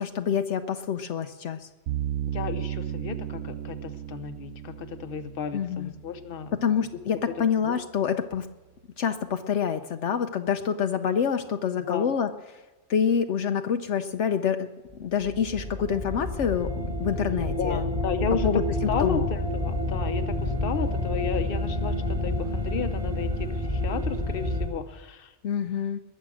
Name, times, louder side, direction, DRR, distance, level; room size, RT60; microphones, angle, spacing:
voice 1, 0.0-1.7 5.5-5.9 6.5-8.5 9.0-12.3 12.9-14.7 15.0-17.8 18.4-18.6 19.0-19.3 25.4-26.0, left 7 dB, 75° left, 7 dB, 1.0 m, -27 dB
sound 1, 1.9-7.0, right 11 dB, 90° right, 1.0 m, -35 dB
voice 2, 2.3-6.6 7.3-7.4 7.6-7.8 11.9-12.1 17.6-18.6 18.9-25.3, left 6 dB, 50° left, 9 dB, 1.1 m, -33 dB
sound 2, 14.9-24.7, left 1 dB, 30° right, 3.2 m, -29 dB
21.5 x 7.5 x 6.2 m, 1.1 s
omnidirectional pair, 1.3 m